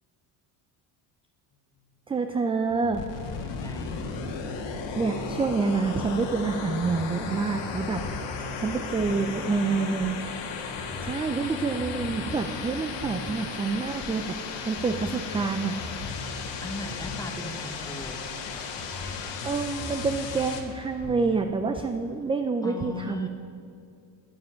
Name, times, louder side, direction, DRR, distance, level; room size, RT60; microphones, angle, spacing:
voice 1, 2.1-3.0 5.0-8.0 8.6-10.2 11.0-14.4 14.7-15.8 19.4-23.3, right 4 dB, 15° right, 7 dB, 0.3 m, -27 dB
sound 1, 2.7-5.8 6.7-21.4, left 2 dB, 40° left, 1.6 m, -41 dB
sound 2, 2.9-20.6, left 5 dB, 65° left, 1.6 m, -36 dB
voice 2, 3.4-4.3 8.7-10.1 10.7-11.2 16.6-18.2 22.6-23.3, left 2 dB, 10° left, 4 dB, 1.1 m, -40 dB
9.8 x 9.7 x 5.6 m, 2.5 s
cardioid pair, 105°, 46 cm